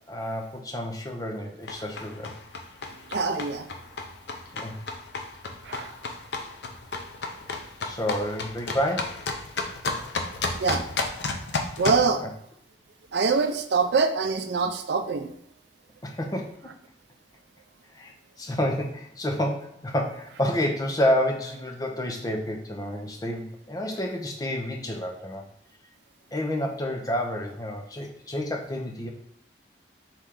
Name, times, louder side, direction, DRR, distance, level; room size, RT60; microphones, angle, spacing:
voice 1, 0.1-2.3 4.5-4.8 7.8-9.2 16.0-16.7 17.9-25.4 26.3-29.1, left 1 dB, 20° left, 2 dB, 0.7 m, -29 dB
sound 1, 1.6-12.1, left 3 dB, 70° left, 0.6 m, -33 dB
voice 2, 3.1-3.7 5.6-5.9 10.5-10.9 11.8-12.2 13.1-15.3, right 4 dB, 70° right, 7 dB, 0.5 m, -24 dB
4.4 x 3.2 x 3.7 m, 0.67 s
head